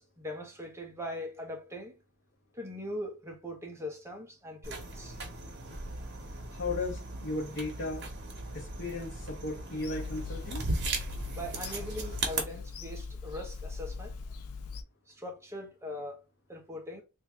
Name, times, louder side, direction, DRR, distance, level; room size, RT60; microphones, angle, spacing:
voice 1, 0.0-2.0 2.5-5.2 11.3-14.1 15.1-16.2 16.5-17.0, left 1 dB, 10° right, 0.9 m, -41 dB
sound 1, 4.6-12.4, right 2 dB, 50° right, 1.0 m, -37 dB
voice 2, 6.5-8.0 8.5-10.7, left 2 dB, 55° left, 0.9 m, -36 dB
Bird vocalization bird call bird song / Telephone, 9.8-14.8, left 4 dB, 75° left, 0.4 m, -41 dB
2.9 x 2.7 x 3.6 m
head